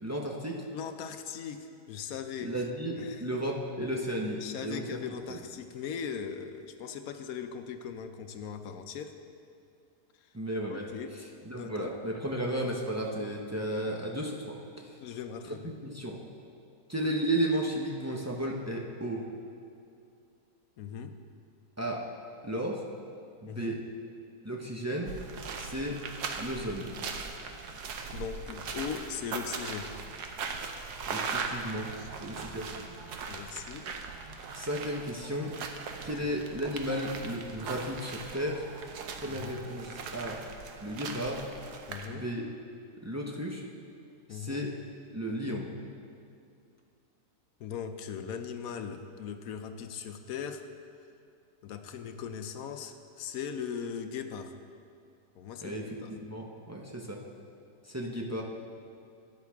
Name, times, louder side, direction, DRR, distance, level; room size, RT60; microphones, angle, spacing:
voice 1, 0.0-0.6 2.4-5.0 10.3-10.9 11.5-15.0 15.5-16.2 16.9-19.3 21.8-22.0 22.4-22.8 23.4-23.8 24.4-25.1 25.6-26.0 26.4-26.9 31.1-31.9 32.2-32.9 33.5-33.6 34.5-35.5 36.0-38.6 39.2-40.4 40.8-41.4 42.1-42.4 43.0-43.6 44.3-44.7 45.1-45.7 55.6-57.2 57.9-58.4, right 1 dB, 25° right, -1 dB, 0.4 m, -34 dB
voice 2, 0.7-2.6 3.0-3.3 4.4-9.1 10.2-10.3 10.7-11.1 11.6-11.9 15.0-15.7 20.8-21.2 23.5-23.8 28.1-29.9 33.3-33.9 39.2-39.6 41.9-42.2 44.3-44.7 47.6-50.6 51.6-54.5 55.4-56.1, left 7 dB, 70° left, 8 dB, 1.0 m, -39 dB
sound 1, 25.0-42.1, right 5 dB, 90° right, 1.3 m, -39 dB
13.0 x 9.7 x 3.5 m, 2.5 s
omnidirectional pair, 1.7 m